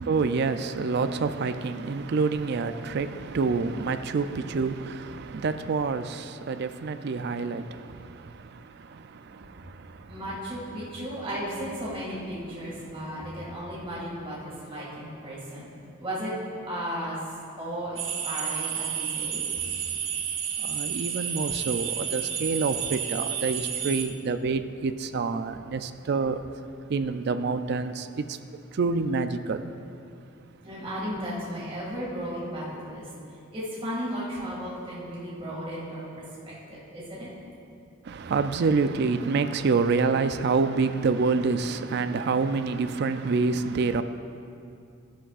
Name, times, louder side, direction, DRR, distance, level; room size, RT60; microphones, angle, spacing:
voice 1, 0.1-7.6 20.7-26.4 26.9-28.1 28.8-29.6 38.1-44.0, right 4 dB, 55° right, 0.4 m, -27 dB
voice 2, 10.1-15.7 16.0-16.3 16.7-17.2 17.6-19.4 30.6-33.1 33.5-37.3, equal, 30° right, 2.2 m, -35 dB
sound 1, 18.0-24.1, right 8 dB, 85° right, 0.9 m, -31 dB
12.5 x 11.5 x 2.5 m
head